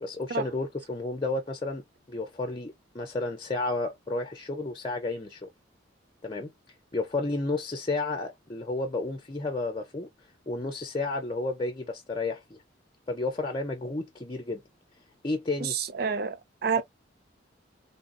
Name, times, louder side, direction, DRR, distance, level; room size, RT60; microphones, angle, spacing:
voice 1, 0.0-1.8 2.1-5.5 6.2-6.5 6.9-10.1 10.5-12.6 13.1-14.6 15.2-15.8, left 2 dB, 25° left, 0.6 m, -31 dB
voice 2, 15.6-16.8, right 6 dB, 50° right, 0.5 m, -29 dB
3.6 x 2.3 x 2.6 m
head